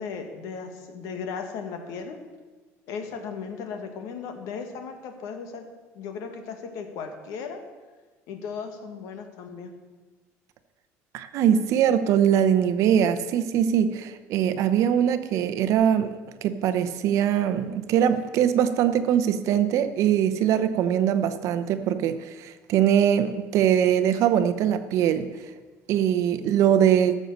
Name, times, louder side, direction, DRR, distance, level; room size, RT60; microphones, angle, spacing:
voice 1, 0.0-2.2 2.9-5.7 5.9-7.6 8.3-9.7, left 5 dB, 75° left, 5 dB, 1.7 m, -36 dB
voice 2, 11.1-16.1 16.4-25.3 25.9-27.2, right 9 dB, 60° right, 11 dB, 0.8 m, -22 dB
14.0 x 6.4 x 6.6 m, 1.3 s
cardioid pair, 140°, 6 cm